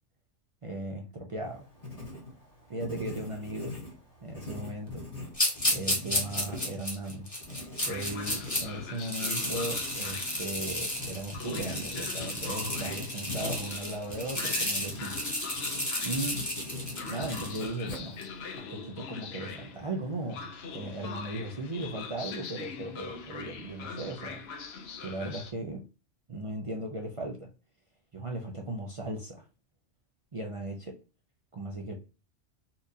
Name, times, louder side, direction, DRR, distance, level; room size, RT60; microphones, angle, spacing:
voice 1, 0.6-1.7 2.7-3.8 4.2-5.1 5.7-7.3 7.8-15.2 15.7-16.5 17.1-18.2 18.6-24.4 25.0-25.9 26.3-27.5 28.1-29.4 30.3-31.0 31.5-32.0, right 1 dB, 45° right, 0.4 m, -37 dB
Writing, 1.4-18.6, left 1 dB, 35° left, 1.1 m, -43 dB
sound 1, 5.3-8.6 9.0-17.7, left 1 dB, 15° left, 1.0 m, -32 dB
Train, 7.8-25.5, left 5 dB, 65° left, 0.9 m, -43 dB
4.3 x 2.5 x 2.6 m
omnidirectional pair, 1.2 m